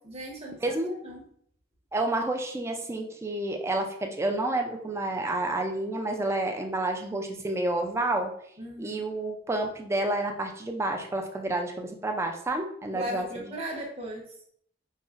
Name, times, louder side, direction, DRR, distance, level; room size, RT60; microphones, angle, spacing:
voice 1, 0.0-1.2 8.6-9.0 12.9-14.2, equal, 35° right, -3 dB, 0.9 m, -37 dB
voice 2, 1.9-8.3 8.8-13.5, right 2 dB, 15° right, 3 dB, 0.4 m, -29 dB
5.3 x 2.0 x 2.4 m, 0.64 s
head